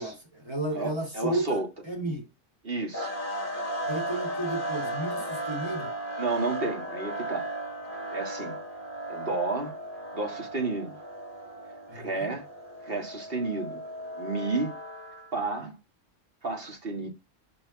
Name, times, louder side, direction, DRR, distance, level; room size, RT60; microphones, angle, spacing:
voice 1, 0.0-2.2 3.9-5.9 11.9-12.3, right 1 dB, 20° right, 2.7 m, -33 dB
voice 2, 0.7-1.7 2.6-3.1 6.2-7.5 8.1-8.6 9.1-9.7 10.1-11.0 11.9-12.4 12.8-13.8 14.2-14.8 15.3-15.8 16.4-17.1, right 3 dB, 45° right, 2.1 m, -31 dB
sound 1, 2.9-15.3, right 1 dB, 45° left, 2.4 m, -36 dB
5.8 x 5.3 x 5.7 m
omnidirectional pair, 1.3 m